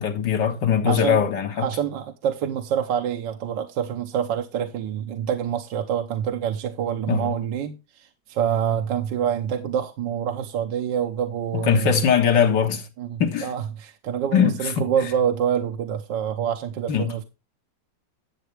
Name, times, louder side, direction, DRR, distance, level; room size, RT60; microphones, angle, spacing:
voice 1, 0.0-1.7 7.1-7.3 11.5-12.9 13.2-13.5 14.3-14.9 16.9-17.1, left 7 dB, 75° left, 2.1 m, -21 dB
voice 2, 0.9-1.2 1.6-12.0 13.0-17.3, right 8 dB, 80° right, 1.5 m, -26 dB
11.0 x 7.2 x 3.3 m
omnidirectional pair, 2.0 m